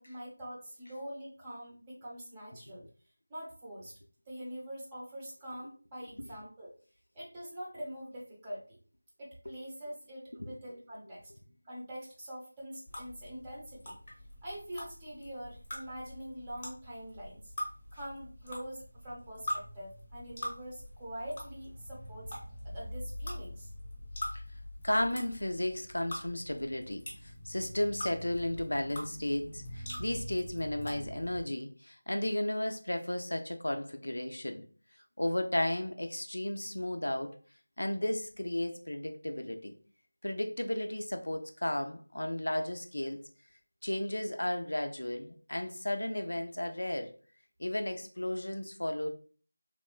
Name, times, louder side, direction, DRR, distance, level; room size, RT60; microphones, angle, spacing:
voice 1, 0.0-2.8 3.3-4.0 4.3-6.7 7.1-8.8 9.2-11.3 11.6-14.0 14.4-17.5 17.9-22.3 22.6-23.7, equal, 15° right, -5 dB, 0.6 m, -44 dB
sound 1, 12.9-31.4, left 1 dB, 30° left, 0.8 m, -43 dB
voice 2, 24.8-34.6 35.2-37.3 37.8-39.7 40.2-43.3 43.8-47.1 47.6-49.1, left 1 dB, 75° left, 6 dB, 0.4 m, -34 dB
2.9 x 2.1 x 2.2 m, 0.39 s
figure-of-eight pair, 170°, 0 cm